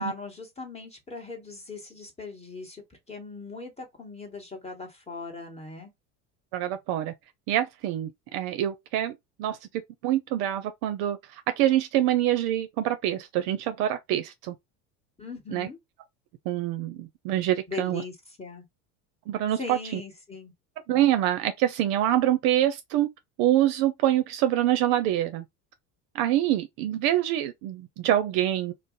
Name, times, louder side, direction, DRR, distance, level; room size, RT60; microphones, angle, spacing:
voice 1, 0.0-5.9 15.2-15.8 17.7-18.6 19.6-20.5, left 3 dB, 15° left, 1.3 m, -39 dB
voice 2, 6.5-7.1 7.5-9.6 10.0-14.5 15.5-15.7 16.5-18.0 19.3-20.0 20.9-23.1 23.4-25.4 26.1-28.7, right 12 dB, 55° right, 0.5 m, -25 dB
2.5 x 2.0 x 3.7 m
hypercardioid pair, 75°, 47 cm